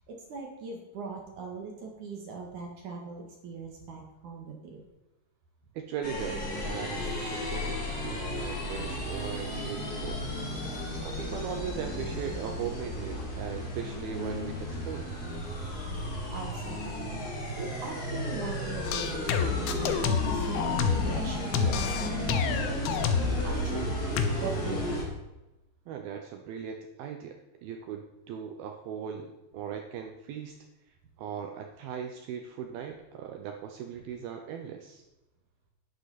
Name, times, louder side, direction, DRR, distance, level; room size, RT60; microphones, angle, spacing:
voice 1, 0.1-4.8 16.3-23.0 23.4-23.8 24.4-25.0, right 5 dB, 60° right, 1 dB, 2.3 m, -40 dB
voice 2, 5.8-10.2 11.0-15.1 25.9-30.6 31.2-35.0, right 8 dB, 85° right, 4 dB, 2.1 m, -39 dB
sound 1, 6.0-25.1, left 1 dB, 30° left, 2.0 m, -34 dB
sound 2, 18.8-21.2 21.5-23.4 24.2-24.3, left 7 dB, 80° left, 2.1 m, -28 dB
11.5 x 11.0 x 4.2 m, 1.0 s
omnidirectional pair, 5.4 m